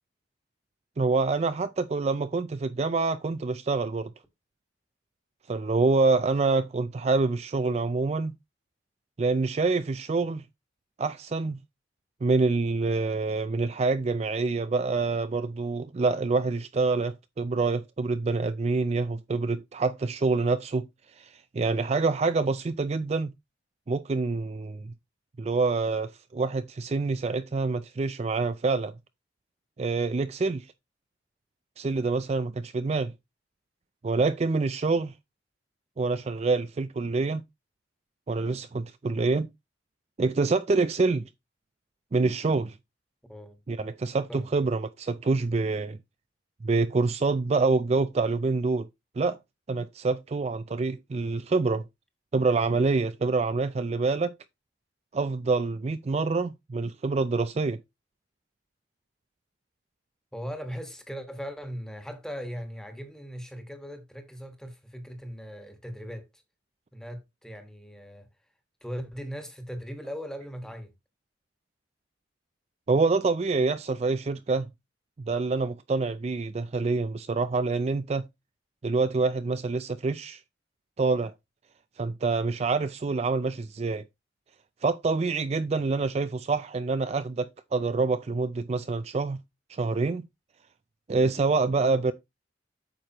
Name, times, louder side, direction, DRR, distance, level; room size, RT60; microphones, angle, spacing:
voice 1, 1.0-4.1 5.5-8.3 9.2-10.4 11.0-11.6 12.2-20.9 21.2-23.3 23.9-24.9 25.4-28.9 29.8-30.7 31.8-33.1 34.0-35.1 36.0-37.4 38.3-39.5 40.2-41.3 42.1-42.8 43.7-46.0 46.6-48.9 49.2-49.4 49.7-51.8 52.3-54.3 55.1-57.8 72.9-74.7 75.2-78.3 78.8-80.4 81.0-81.3 82.0-84.0 84.8-89.4 89.7-90.2 91.1-92.1, right 3 dB, 35° right, 0.4 m, -26 dB
voice 2, 60.3-66.4 66.9-68.3 68.8-70.9, equal, 5° left, 1.4 m, -39 dB
8.7 x 6.5 x 2.9 m
head